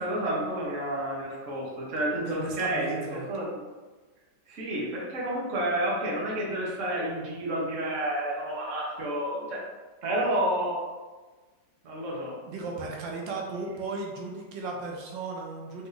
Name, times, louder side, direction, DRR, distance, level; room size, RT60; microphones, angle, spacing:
voice 1, 0.0-3.0 3.3-3.4 4.5-9.6 10.0-10.8 11.8-12.4, right 1 dB, 50° right, -4 dB, 1.3 m, -30 dB
voice 2, 2.2-3.3 12.5-15.9, right 3 dB, 85° right, -1 dB, 1.4 m, -35 dB
3.9 x 2.9 x 3.9 m, 1.3 s
omnidirectional pair, 1.9 m